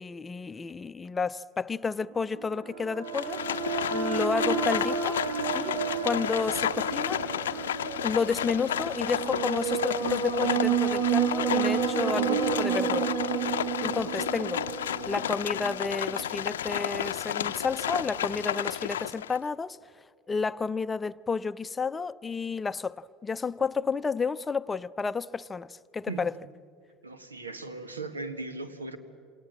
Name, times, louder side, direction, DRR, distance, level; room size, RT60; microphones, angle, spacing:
voice 1, 0.0-3.4 3.9-5.2 5.5-5.7 6.0-7.2 8.0-13.1 13.8-14.6 15.1-19.8 20.3-26.3, left 5 dB, 20° left, 0.6 m, -31 dB
sound 1, 2.1-16.2, right 7 dB, 60° right, 2.1 m, -30 dB
Livestock farm animals working animals, 3.1-19.4, left 10 dB, 75° left, 0.6 m, -32 dB
voice 2, 27.0-29.0, right 3 dB, 85° right, 1.8 m, -38 dB
27.5 x 27.0 x 7.5 m
figure-of-eight pair, 70°, 0 cm